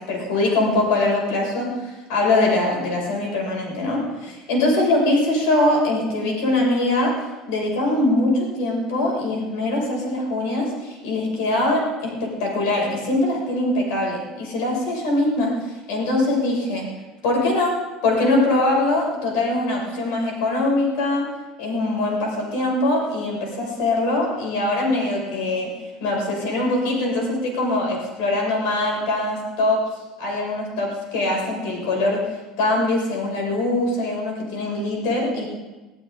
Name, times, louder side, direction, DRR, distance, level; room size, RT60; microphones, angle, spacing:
voice 1, 0.0-7.1 7.5-16.8 17.2-17.7 18.0-21.3 21.6-25.7 26.0-29.8 30.2-32.2 32.6-35.5, left 2 dB, 80° left, -1 dB, 6.6 m, -22 dB
21.5 x 15.0 x 3.9 m, 1.2 s
cardioid pair, 165°, 0 cm